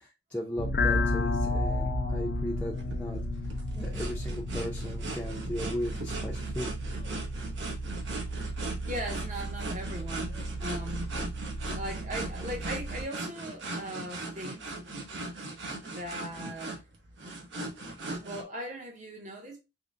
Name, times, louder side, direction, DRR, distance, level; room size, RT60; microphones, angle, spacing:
voice 1, 0.3-3.2 3.8-6.7, equal, 10° left, 0.5 m, -36 dB
sound 1, 0.6-13.0, left 1 dB, 55° left, 0.5 m, -33 dB
sound 2, 2.8-18.4, right 2 dB, 75° right, 0.8 m, -39 dB
voice 2, 8.8-11.1 11.7-14.8 15.8-16.8 18.2-19.6, right 1 dB, 45° right, 0.8 m, -39 dB
3.7 x 2.1 x 3.4 m
head